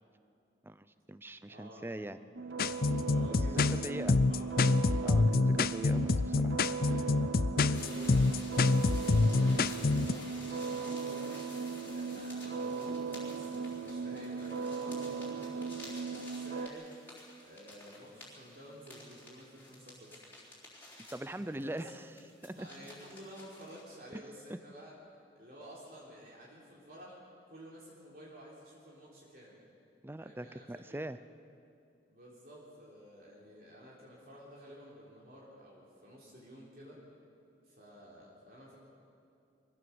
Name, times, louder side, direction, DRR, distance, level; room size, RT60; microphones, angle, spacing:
voice 1, 0.6-2.2 3.5-4.2 5.0-6.6 21.1-22.1 22.4-22.9 24.1-24.2 24.5-24.6 30.0-31.2, right 1 dB, 10° right, 13 dB, 0.5 m, -42 dB
voice 2, 1.4-2.4 3.0-4.5 6.6-7.1 7.6-11.5 11.9-15.7 16.3-16.9 17.4-20.2 21.2-21.9 22.5-24.9 25.4-27.2 27.5-29.6 30.2-31.3 32.1-37.0 37.6-38.8, equal, 50° right, -5 dB, 3.6 m, -52 dB
sound 1, 2.3-16.7, right 5 dB, 65° right, 0.8 m, -38 dB
sound 2, 2.6-10.1, left 3 dB, 50° left, 0.4 m, -27 dB
sound 3, 7.7-23.8, left 2 dB, 10° left, 4.1 m, -52 dB
24.0 x 16.0 x 7.1 m, 2.6 s
head